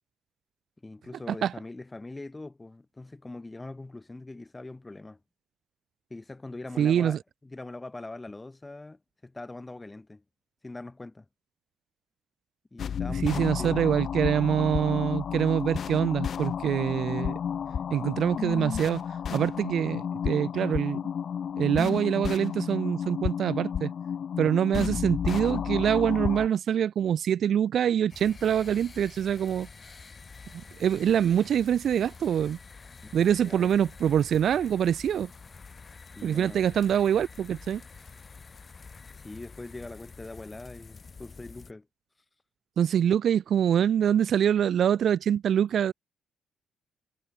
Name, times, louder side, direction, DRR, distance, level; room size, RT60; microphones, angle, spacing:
voice 1, 0.8-5.2 6.1-10.2 10.6-11.2 12.7-13.8 33.0-33.7 36.1-36.6 39.1-41.9, left 2 dB, 15° left, 1.4 m, -42 dB
voice 2, 6.8-7.2 13.2-17.4 17.9-19.0 19.3-21.0 21.6-23.9 24.4-29.7 30.5-32.6 33.1-35.3 36.2-37.8 42.8-45.9, right 9 dB, 65° right, 0.4 m, -25 dB
sound 1, 12.8-26.5, left 8 dB, 55° left, 0.4 m, -31 dB
sound 2, 28.1-41.7, left 4 dB, 35° left, 4.0 m, -48 dB
cardioid pair, 90°, 0 cm